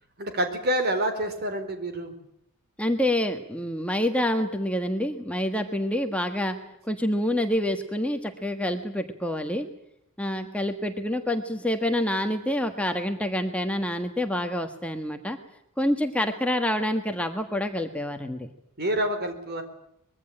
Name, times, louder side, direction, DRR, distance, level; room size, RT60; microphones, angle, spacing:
voice 1, 0.2-2.1 18.8-19.6, right 1 dB, 45° right, 8 dB, 4.5 m, -27 dB
voice 2, 2.8-6.6 6.9-9.7 10.2-15.4 15.8-18.5, left 1 dB, 5° left, 5 dB, 1.5 m, -27 dB
24.5 x 22.0 x 8.8 m, 0.77 s
head